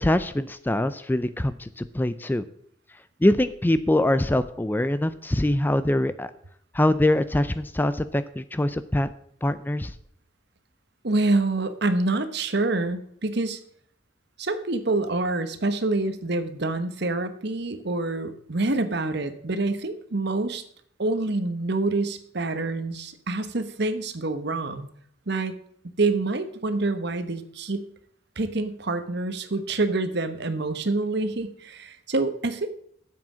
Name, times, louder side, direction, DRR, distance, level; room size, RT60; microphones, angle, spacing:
voice 1, 0.0-2.4 3.2-6.3 6.7-9.1 9.4-9.9, left 1 dB, 10° left, 13 dB, 0.4 m, -23 dB
voice 2, 11.0-13.6 14.4-20.6 21.0-24.9 25.3-25.5 26.0-27.8 28.4-32.7, right 2 dB, 60° right, 10 dB, 1.1 m, -26 dB
9.3 x 7.6 x 6.2 m, 0.65 s
head